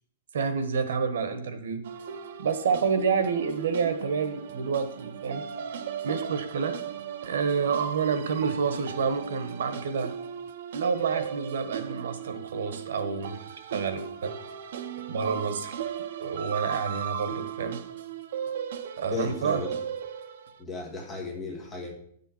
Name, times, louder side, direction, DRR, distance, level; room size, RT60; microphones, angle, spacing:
voice 1, 0.3-1.8 2.4-5.4 6.0-6.8 7.2-10.1 10.7-13.4 13.7-14.3 15.1-15.8 16.2-17.8 19.0-19.6, right 5 dB, 85° right, 9 dB, 1.3 m, -28 dB
sound 1, 1.8-20.6, right 8 dB, 55° right, 0.6 m, -37 dB
voice 2, 19.1-19.7 20.6-21.9, left 3 dB, 10° left, -1 dB, 1.5 m, -35 dB
10.5 x 6.9 x 4.5 m, 0.66 s
supercardioid pair, 180°, 0 cm